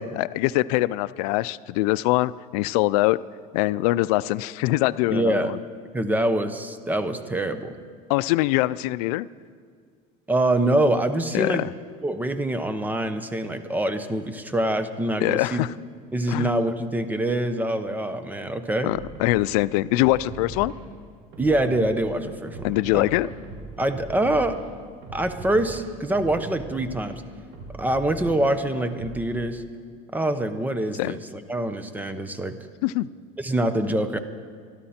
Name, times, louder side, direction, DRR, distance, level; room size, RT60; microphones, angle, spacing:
voice 1, 0.0-3.2 3.5-5.6 8.1-9.3 11.3-11.7 15.2-15.7 16.3-16.5 18.8-20.7 22.6-23.3 31.0-31.2 32.8-33.1, left 18 dB, 90° left, 17 dB, 0.4 m, -23 dB
voice 2, 5.1-5.5 5.9-7.7 10.3-11.7 12.0-15.6 16.1-18.9 21.4-22.7 22.9-23.1 23.8-24.6 25.1-27.2 27.7-29.6 30.1-32.6 33.4-34.2, right 1 dB, 10° right, 9 dB, 0.9 m, -25 dB
sound 1, 18.8-19.6 19.9-20.8 21.3-22.1 22.5-24.6 25.0-27.1 27.5-29.2, right 2 dB, 70° right, 5.2 m, -40 dB
25.5 x 12.5 x 4.3 m, 2.1 s
cardioid pair, 140°, 19 cm